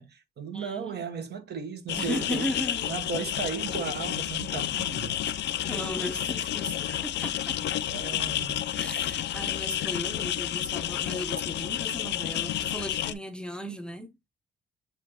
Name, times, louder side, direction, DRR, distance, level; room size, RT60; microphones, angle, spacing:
voice 1, 0.0-2.5 2.9-5.4 6.8-7.0 7.9-8.6, right 5 dB, 55° right, 1.0 m, -36 dB
voice 2, 0.5-1.0 2.0-2.9 5.7-8.0 8.7-14.1, equal, 5° left, 0.7 m, -36 dB
sound 1, 1.9-13.1, left 12 dB, 60° left, 0.4 m, -30 dB
6.9 x 2.4 x 2.8 m
cardioid pair, 90°, 20 cm